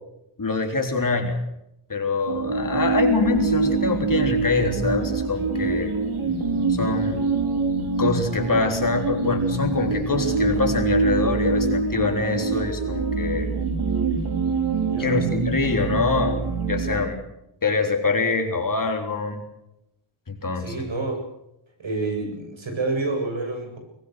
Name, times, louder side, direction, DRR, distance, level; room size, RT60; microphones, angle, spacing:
voice 1, 0.4-1.4 1.9-5.9 6.7-7.2 8.0-13.5 15.0-16.4 16.7-17.2 17.6-19.4 20.3-20.9, left 3 dB, 40° left, 4 dB, 3.7 m, -24 dB
sound 1, 2.3-17.0, right 4 dB, 85° right, 4.4 m, -25 dB
voice 2, 14.8-15.2 20.6-21.2 21.8-23.8, right 3 dB, 65° right, 4 dB, 7.4 m, -28 dB
23.0 x 21.0 x 6.6 m, 0.84 s
wide cardioid pair, 135°, 49 cm